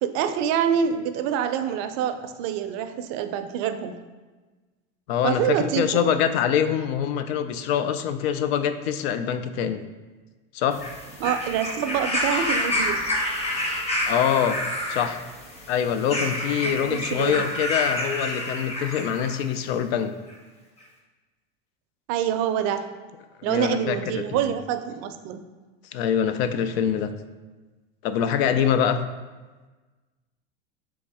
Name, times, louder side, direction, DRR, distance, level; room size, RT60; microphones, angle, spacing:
voice 1, 0.0-3.9 5.2-5.9 11.2-13.0 16.6-17.4 22.1-22.9 23.4-25.4, right 9 dB, 55° right, 8 dB, 0.4 m, -26 dB
voice 2, 5.1-9.8 10.5-10.8 14.0-14.6 14.9-15.2 15.7-20.1 23.4-24.5 25.9-27.1 28.0-29.0, left 8 dB, 80° left, 10 dB, 0.5 m, -24 dB
sound 1, 10.7-19.4 20.3-20.4, left 1 dB, 20° left, 0.8 m, -28 dB
3.5 x 3.0 x 4.6 m, 1.3 s
supercardioid pair, 115°, 31 cm